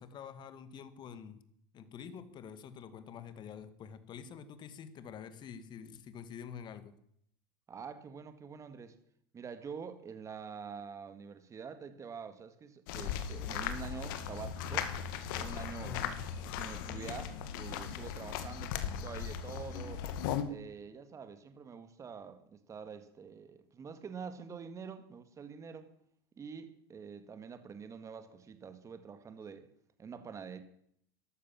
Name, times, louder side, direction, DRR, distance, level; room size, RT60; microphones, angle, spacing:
voice 1, 0.0-1.4 1.7-6.9 15.8-16.3, left 7 dB, 40° left, 12 dB, 2.0 m, -47 dB
voice 2, 7.7-9.0 9.3-14.9 15.3-15.9 16.5-20.0 20.5-25.9 26.4-29.7 30.0-30.6, right 6 dB, 25° right, 10 dB, 1.9 m, -46 dB
sound 1, 12.9-20.4, left 9 dB, 70° left, 1.9 m, -38 dB
13.5 x 12.0 x 7.3 m, 0.68 s
hypercardioid pair, 100°, 12 cm